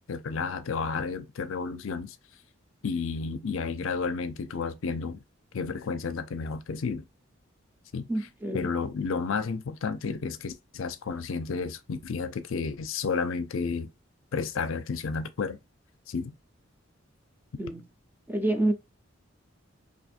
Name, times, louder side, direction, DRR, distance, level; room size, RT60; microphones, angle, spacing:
voice 1, 0.1-2.2 2.8-5.2 5.5-7.0 7.9-8.1 8.5-13.9 14.3-15.6 16.1-16.3, left 5 dB, 80° left, 0.5 m, -31 dB
voice 2, 8.1-8.7 17.6-17.8 18.3-18.7, right 1 dB, 10° right, 0.4 m, -28 dB
2.6 x 2.5 x 4.1 m
head